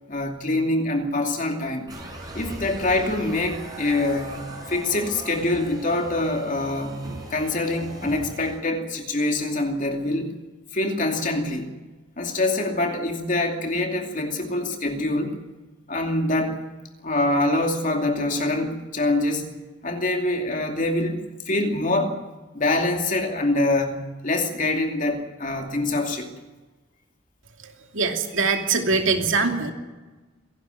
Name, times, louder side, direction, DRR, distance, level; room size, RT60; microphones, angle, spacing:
voice 1, 0.1-1.9 2.3-10.3 10.7-11.7 12.2-15.4 15.9-16.6 17.0-19.5 19.8-22.2 22.5-26.3, left 2 dB, 40° left, 4 dB, 2.6 m, -25 dB
sound 1, 1.9-8.6, right 1 dB, 20° right, 6.4 m, -38 dB
voice 2, 27.6-29.7, right 4 dB, 75° right, 4 dB, 2.8 m, -23 dB
26.5 x 11.5 x 9.4 m, 1.2 s
head